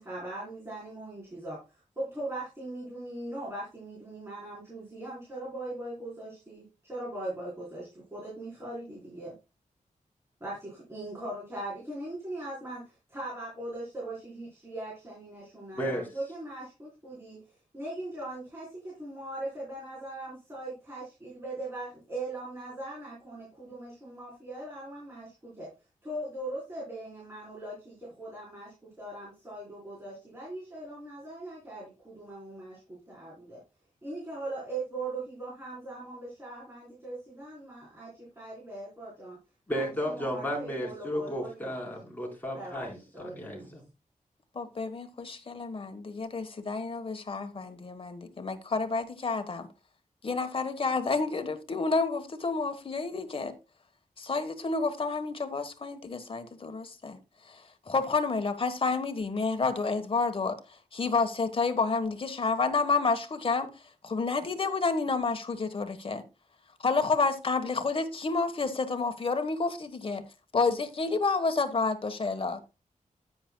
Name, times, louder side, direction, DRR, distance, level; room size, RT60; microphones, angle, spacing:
voice 1, 0.0-9.3 10.4-25.7 26.0-33.6 34.0-39.4 39.7-41.8 42.5-42.9 43.1-43.7, right 2 dB, 20° right, 4.1 m, -40 dB
voice 2, 15.7-16.1 39.7-43.8, equal, 15° left, 4.3 m, -33 dB
voice 3, 44.5-49.7 50.2-53.5 54.2-57.2 57.5-60.6 60.9-63.7 64.0-66.2 66.8-70.2 70.5-72.6, left 4 dB, 40° left, 1.2 m, -29 dB
10.0 x 9.2 x 2.2 m
wide cardioid pair, 125°, 14 cm